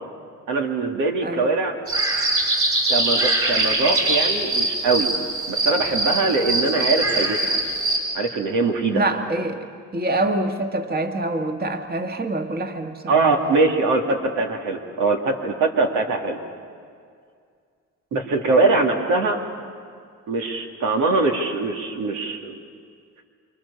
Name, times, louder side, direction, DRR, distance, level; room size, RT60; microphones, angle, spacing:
voice 1, 0.5-1.8 2.9-5.1 5.5-7.6 8.1-9.0 13.1-16.4 18.1-19.4 20.3-22.5, right 3 dB, 85° right, 2 dB, 2.8 m, -22 dB
sound 1, 1.9-8.0, right 2 dB, 50° right, 7.8 m, -22 dB
voice 2, 8.9-13.1, right 2 dB, 30° right, 5 dB, 2.0 m, -25 dB
29.0 x 26.0 x 7.1 m, 2.2 s
cardioid pair, 90°, 30 cm